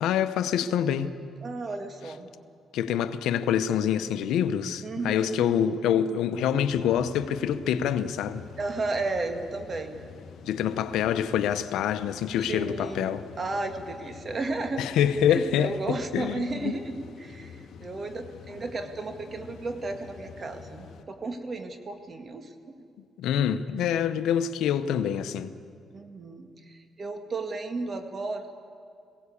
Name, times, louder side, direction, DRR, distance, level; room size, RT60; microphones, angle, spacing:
voice 1, 0.0-1.1 2.7-8.4 10.4-13.3 14.8-16.7 23.2-25.5, left 9 dB, 85° left, 0.8 m, -26 dB
voice 2, 1.4-2.3 4.8-5.5 8.6-10.0 10.4-10.7 12.4-15.0 15.3-22.5 25.9-28.5, right 3 dB, 40° right, 2.0 m, -34 dB
sound 1, 6.7-21.0, left 6 dB, 70° left, 1.1 m, -47 dB
21.0 x 17.0 x 8.5 m
cardioid pair, 90°, 0 cm